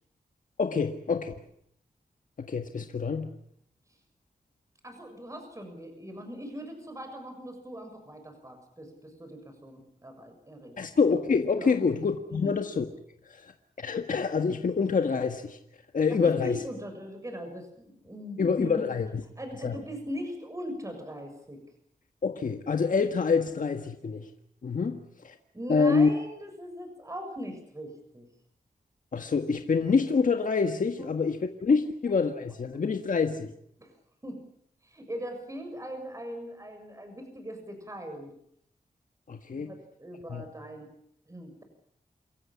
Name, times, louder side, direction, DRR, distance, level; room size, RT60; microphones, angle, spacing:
voice 1, 0.6-1.3 2.4-3.3 10.8-12.8 13.2-15.6 15.9-16.6 18.4-19.2 19.6-19.8 22.2-24.3 24.6-25.4 25.7-26.1 29.1-33.5 39.3-39.7 40.3-40.5, left 5 dB, 65° left, 6 dB, 1.7 m, -26 dB
voice 2, 4.8-10.7 11.6-11.7 12.3-12.5 16.1-18.8 19.4-21.6 25.5-28.2 31.0-31.1 33.8-33.9 34.2-34.4 34.8-38.3 39.5-40.9 41.3-41.6, equal, 20° right, 5 dB, 6.8 m, -40 dB
28.5 x 14.5 x 9.9 m, 0.71 s
wide cardioid pair, 75°, 15 cm